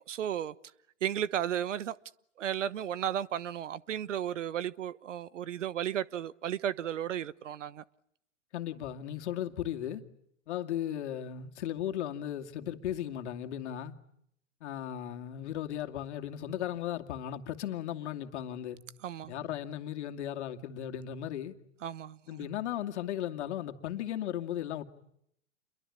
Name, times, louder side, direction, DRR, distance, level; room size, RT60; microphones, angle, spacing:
voice 1, 0.1-0.5 1.0-2.0 2.4-7.8 19.0-19.3 21.8-22.5, right 10 dB, 75° right, 1.1 m, -34 dB
voice 2, 8.5-10.0 10.5-13.9 14.6-18.8 19.3-21.5 22.3-24.8, left 11 dB, 65° left, 2.5 m, -36 dB
29.0 x 23.0 x 8.6 m
hypercardioid pair, 105°, 37 cm